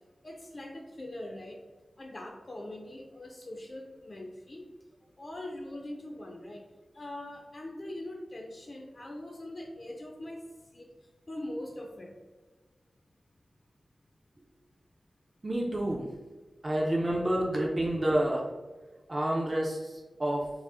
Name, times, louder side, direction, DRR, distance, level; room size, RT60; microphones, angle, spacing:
voice 1, 0.2-1.6 2.0-4.6 5.2-6.6 6.9-10.4 10.7-10.9 11.3-12.1, left 1 dB, 40° left, 1 dB, 0.4 m, -42 dB
voice 2, 15.4-16.1 16.6-18.5 19.1-20.5, right 1 dB, 30° right, -3 dB, 0.4 m, -29 dB
4.7 x 2.0 x 2.5 m, 1.3 s
wide cardioid pair, 115°, 0 cm